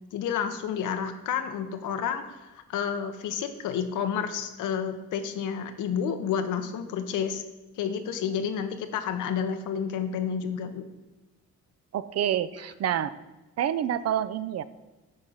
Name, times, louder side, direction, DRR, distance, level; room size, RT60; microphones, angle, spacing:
voice 1, 0.1-7.4 7.8-10.8, left 7 dB, 85° left, 8 dB, 0.9 m, -30 dB
voice 2, 11.9-13.2 13.6-14.6, right 10 dB, 55° right, 14 dB, 0.5 m, -27 dB
8.9 x 3.9 x 5.6 m, 1.1 s
cardioid pair, 90°, 30 cm